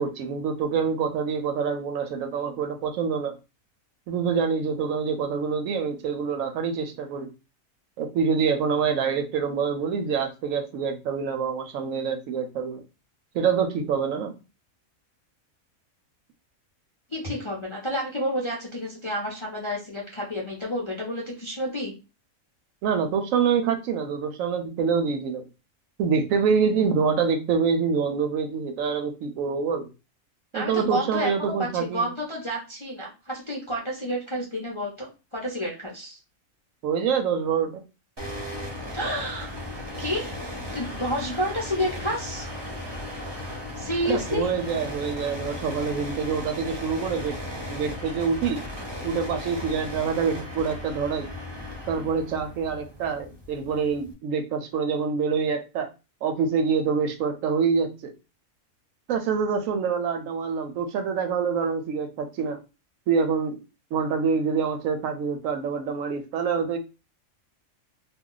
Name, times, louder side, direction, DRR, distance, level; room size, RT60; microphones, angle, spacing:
voice 1, 0.0-3.4 4.1-7.3 8.0-12.8 13.3-14.3 22.8-25.4 26.0-29.9 30.5-32.1 36.8-37.8 44.1-47.4 47.7-48.6 49.0-51.3 51.9-55.9 56.2-58.1 59.1-62.6 63.1-63.6 63.9-66.8, right 6 dB, 75° right, 6 dB, 0.9 m, -26 dB
voice 2, 17.1-21.9 30.5-36.2 38.9-39.6 40.0-40.4 40.7-42.5 43.8-44.5, equal, 35° left, -3 dB, 0.4 m, -30 dB
sound 1, 38.2-54.1, left 1 dB, 25° right, 0.7 m, -36 dB
2.3 x 2.3 x 3.7 m, 0.30 s
omnidirectional pair, 1.4 m